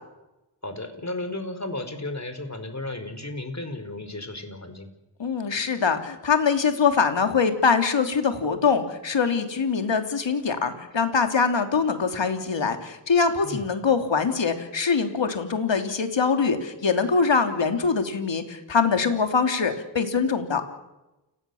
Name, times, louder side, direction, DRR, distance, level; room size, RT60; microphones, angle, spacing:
voice 1, 0.6-4.9 13.4-13.7, left 2 dB, 35° left, 9 dB, 4.8 m, -34 dB
voice 2, 5.2-20.6, left 5 dB, 70° left, 6 dB, 3.2 m, -23 dB
29.5 x 18.0 x 7.2 m, 1.0 s
cardioid pair, 45°, 45 cm